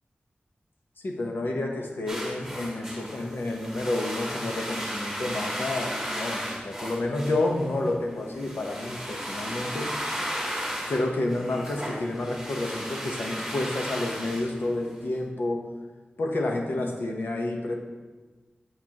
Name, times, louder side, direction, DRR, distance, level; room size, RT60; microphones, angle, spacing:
voice 1, 1.0-9.9 10.9-15.6 16.2-17.7, left 2 dB, 85° left, 1 dB, 1.0 m, -29 dB
sound 1, 2.1-15.1, equal, 5° right, 1.8 m, -35 dB
8.5 x 7.1 x 3.0 m, 1.3 s
wide cardioid pair, 80°, 3 cm